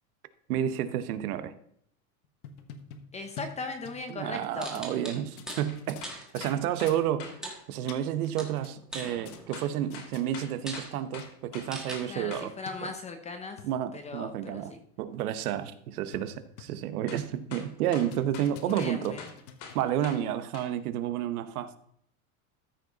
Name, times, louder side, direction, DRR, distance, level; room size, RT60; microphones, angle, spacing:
voice 1, 0.5-1.5 4.1-7.3 7.7-12.5 12.8-12.9 13.6-14.7 15.0-19.1 19.7-21.8, right 11 dB, 85° right, 12 dB, 1.1 m, -31 dB
sound 1, 2.2-4.5 4.7-4.8 5.3-6.6 6.9-7.0 7.6-8.3 8.6-9.6 9.9-10.3 10.9-11.0 11.2-11.3 11.7-11.8 12.0-12.1 12.7-12.8 13.3-13.7 14.2-14.3 14.6-14.7 15.2-15.3 15.6-15.7 16.1-16.8 17.1-17.4 17.8-20.0, left 6 dB, 85° left, 1.3 m, -47 dB
voice 2, 3.1-4.8 12.1-13.6 13.9-14.8 18.7-19.3, left 3 dB, 15° left, 6 dB, 0.8 m, -38 dB
sound 2, 4.6-5.7 6.0-6.3 7.4-8.1 8.4-9.7 10.2-10.3 10.7-10.9 11.7-12.0, right 1 dB, ahead, 1.5 m, -40 dB
sound 3, 5.7-7.4 9.5-12.5 17.1-17.3 17.5-20.2 20.5-20.7, left 6 dB, 60° left, 2.6 m, -44 dB
14.0 x 5.2 x 4.0 m, 0.68 s
supercardioid pair, 155°, 43 cm